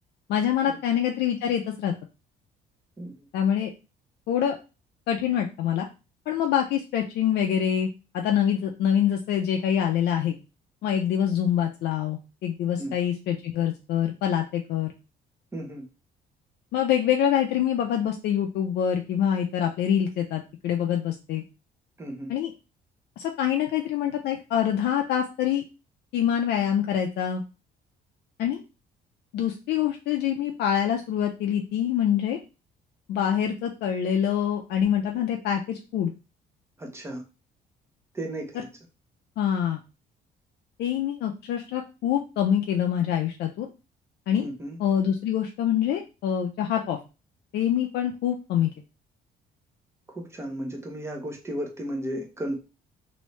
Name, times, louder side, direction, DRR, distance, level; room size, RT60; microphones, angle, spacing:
voice 1, 0.3-1.9 3.3-3.7 4.3-4.6 5.1-5.9 6.3-7.9 8.1-10.4 10.8-14.9 16.7-21.4 22.3-22.5 23.2-25.6 26.1-27.4 28.4-28.6 29.3-32.4 33.1-36.1 38.5-38.6 39.4-39.8 40.8-43.7 44.3-44.5 44.8-47.0 47.5-48.7, left 9 dB, 75° left, 2 dB, 0.5 m, -25 dB
voice 2, 15.5-15.8 22.0-22.3 36.8-37.2 38.1-38.7 44.4-44.8 50.1-52.6, right 1 dB, 15° right, 2 dB, 0.8 m, -34 dB
3.0 x 2.7 x 3.1 m, 0.29 s
cardioid pair, 130°, 17 cm